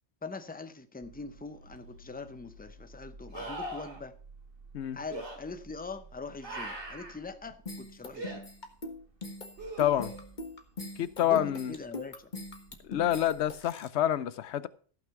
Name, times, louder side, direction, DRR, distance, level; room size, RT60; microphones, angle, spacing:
voice 1, 0.2-4.2 4.9-8.5 11.2-12.3 12.9-13.1, left 3 dB, 10° left, 0.7 m, -42 dB
sound 1, 1.0-13.6, right 2 dB, 50° right, 1.7 m, -55 dB
sound 2, 1.7-1.8 3.3-4.0 5.1-5.4 6.4-7.2 8.1-8.4 9.6-10.2 13.4-13.5, right 1 dB, 70° right, 2.9 m, -40 dB
sound 3, 7.7-13.9, left 2 dB, 40° left, 1.6 m, -42 dB
voice 2, 9.8-10.1 11.0-11.7 12.9-14.7, left 11 dB, 70° left, 0.9 m, -28 dB
14.5 x 6.0 x 5.9 m
omnidirectional pair, 1.2 m